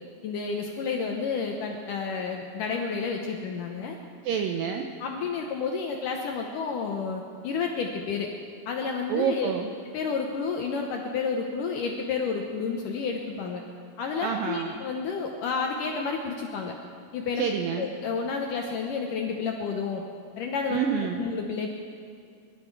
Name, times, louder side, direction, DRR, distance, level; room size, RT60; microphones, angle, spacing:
voice 1, 0.2-4.0 5.0-8.3 8.7-9.5 9.9-13.6 14.0-16.7 17.1-17.4 17.8-20.0 20.4-20.8 21.2-21.8, left 5 dB, 75° left, 2 dB, 2.0 m, -30 dB
voice 2, 4.2-4.9 9.1-9.7 14.2-14.8 17.4-17.9 20.7-21.2, right 7 dB, 80° right, 4 dB, 2.0 m, -28 dB
24.5 x 12.0 x 4.7 m, 2.3 s
omnidirectional pair, 4.8 m